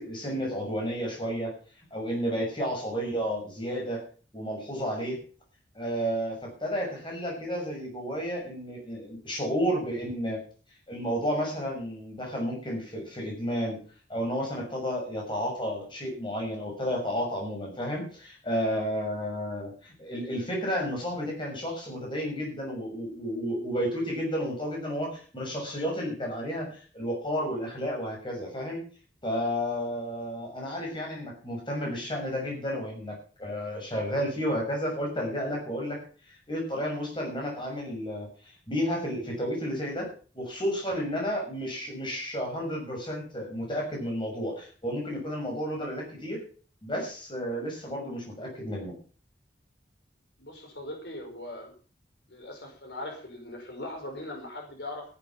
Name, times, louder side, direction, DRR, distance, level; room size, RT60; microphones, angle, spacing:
voice 1, 0.0-1.5 1.9-4.0 4.3-5.2 5.7-10.4 10.9-13.8 14.1-28.8 29.2-36.0 36.5-40.1 40.3-46.4 46.8-48.9, equal, 25° left, 0 dB, 6.4 m, -32 dB
voice 2, 50.4-51.7 52.3-55.0, left 1 dB, 70° left, 2 dB, 5.1 m, -40 dB
15.5 x 10.0 x 6.0 m, 0.40 s
head